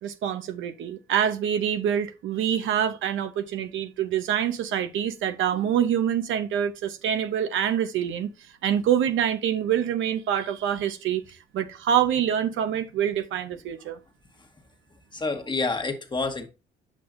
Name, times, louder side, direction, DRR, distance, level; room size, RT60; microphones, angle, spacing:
voice 1, 0.0-8.3 8.6-11.2 11.5-14.0, right 9 dB, 80° right, 0.9 m, -26 dB
voice 2, 15.1-16.5, left 3 dB, 25° left, 1.3 m, -28 dB
7.5 x 5.5 x 2.6 m
cardioid pair, 90°, 20 cm